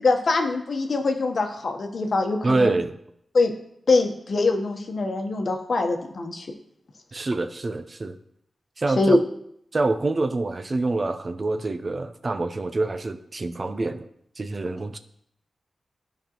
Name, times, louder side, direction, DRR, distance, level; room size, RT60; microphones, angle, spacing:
voice 1, 0.0-2.7 3.3-3.5 3.9-6.5 9.0-9.2, left 3 dB, 60° left, 4 dB, 1.0 m, -23 dB
voice 2, 2.4-2.9 7.1-8.2 8.8-9.2 9.7-14.0 14.4-15.0, right 2 dB, 40° right, 10 dB, 0.5 m, -26 dB
12.0 x 5.2 x 3.0 m, 0.72 s
wide cardioid pair, 100°, 0 cm